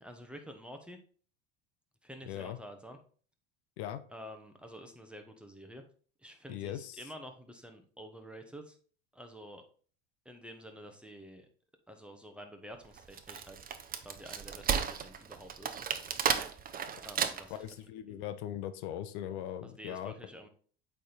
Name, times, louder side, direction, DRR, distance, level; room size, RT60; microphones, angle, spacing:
voice 1, 0.0-1.0 2.0-3.0 4.1-5.8 6.2-8.8 9.1-9.6 10.2-11.5 11.9-13.6 14.0-15.8 17.0-17.6 18.1-18.2 19.6-20.5, equal, 5° right, 5 dB, 1.0 m, -49 dB
voice 2, 2.2-2.6 3.8-4.0 6.5-7.0 17.6-20.1, left 11 dB, 70° left, 12 dB, 0.8 m, -39 dB
Wood, 13.0-17.7, right 7 dB, 25° right, 0.7 m, -33 dB
8.3 x 3.6 x 4.0 m, 0.44 s
supercardioid pair, 100°, 35 cm